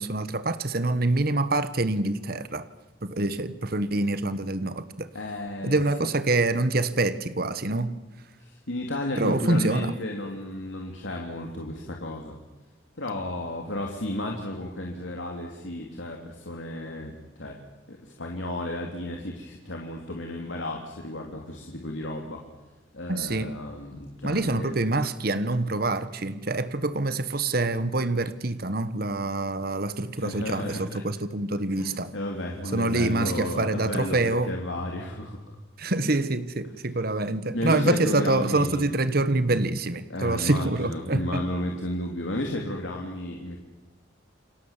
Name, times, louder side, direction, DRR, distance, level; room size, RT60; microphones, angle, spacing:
voice 1, 0.0-2.6 3.0-5.1 5.6-8.0 9.2-9.9 23.1-23.6 24.2-32.1 32.7-34.5 35.8-41.4, right 2 dB, 50° right, 13 dB, 1.4 m, -26 dB
voice 2, 5.1-6.1 8.4-12.3 13.0-17.6 17.9-22.4 22.9-24.7 30.2-31.0 31.8-35.4 37.5-38.9 40.1-43.6, left 1 dB, 80° left, 1 dB, 3.1 m, -33 dB
29.0 x 23.5 x 7.4 m, 1.1 s
head